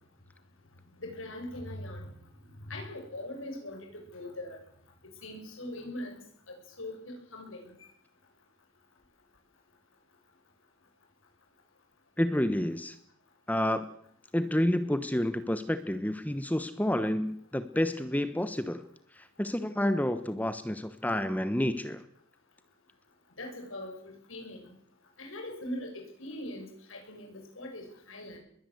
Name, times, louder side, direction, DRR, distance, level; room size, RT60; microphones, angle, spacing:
voice 1, 1.0-2.1 2.6-4.6 5.2-6.2 6.8-7.9 23.4-24.7 25.2-28.4, left 1 dB, 90° left, 2 dB, 7.1 m, -41 dB
voice 2, 12.2-13.0 13.5-13.9 14.3-18.8 19.1-22.0, left 1 dB, 10° left, 12 dB, 1.0 m, -29 dB
21.5 x 18.0 x 7.9 m, 0.66 s
head